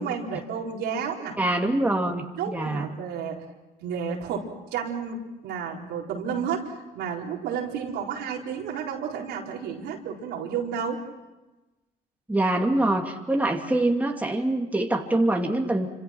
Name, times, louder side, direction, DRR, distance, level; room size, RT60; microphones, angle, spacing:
voice 1, 0.0-1.4 2.4-3.4 3.8-11.0, right 6 dB, 85° right, -1 dB, 4.6 m, -31 dB
voice 2, 1.4-2.9 12.3-15.9, right 1 dB, 10° right, 2 dB, 2.6 m, -24 dB
28.5 x 26.5 x 6.1 m, 1.1 s
cardioid pair, 110°, 17 cm